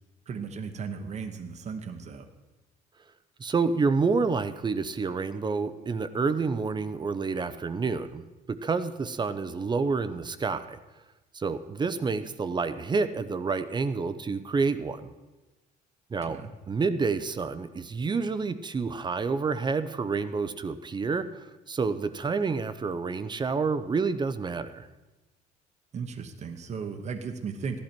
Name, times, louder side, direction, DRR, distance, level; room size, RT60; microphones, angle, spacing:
voice 1, 0.3-2.3 16.2-16.5 25.9-27.8, right 5 dB, 40° right, 5 dB, 1.1 m, -36 dB
voice 2, 3.4-10.8 11.3-15.1 16.1-16.4 16.7-24.9, right 4 dB, 25° right, 11 dB, 0.8 m, -28 dB
15.0 x 11.5 x 4.5 m, 1.1 s
cardioid pair, 110°, 17 cm